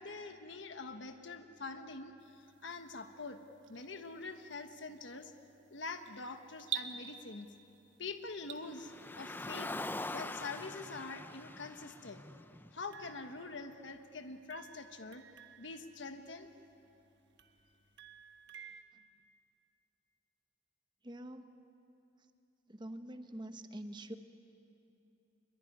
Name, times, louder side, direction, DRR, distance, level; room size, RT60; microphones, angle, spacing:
voice 1, 0.0-3.4 3.7-5.3 5.7-7.5 8.0-9.7 10.1-12.3 12.7-15.2 15.6-16.5, left 3 dB, 75° left, 7 dB, 1.3 m, -45 dB
sound 1, 2.2-9.2, right 9 dB, 90° right, 1.3 m, -48 dB
Car, 8.7-13.1, left 2 dB, 10° left, 0.5 m, -43 dB
sound 2, 12.9-14.1 14.5-16.7 17.4-18.8, right 8 dB, 60° right, 1.3 m, -56 dB
voice 2, 21.0-21.5 22.7-24.1, right 1 dB, 25° right, 8 dB, 1.1 m, -45 dB
24.5 x 22.5 x 9.8 m, 2.8 s
head